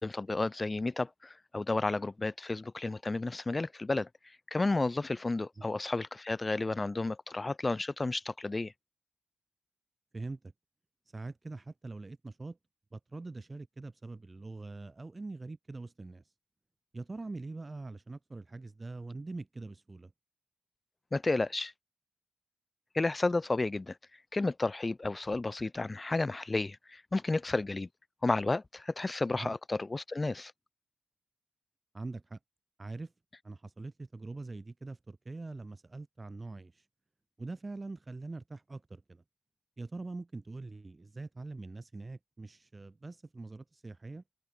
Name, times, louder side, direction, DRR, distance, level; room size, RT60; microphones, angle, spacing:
voice 1, 0.0-4.1 4.5-8.7 21.1-21.7 22.9-24.0 24.3-27.9 28.2-30.5, left 2 dB, 30° left, 1.9 m, -32 dB
voice 2, 10.1-10.5 11.1-12.6 12.9-16.2 16.9-20.1 29.3-29.5 31.9-32.4 32.8-33.1 33.4-36.8 37.4-39.2 39.8-44.2, right 3 dB, 30° right, 2.0 m, -43 dB
cardioid pair, 55°, 0 cm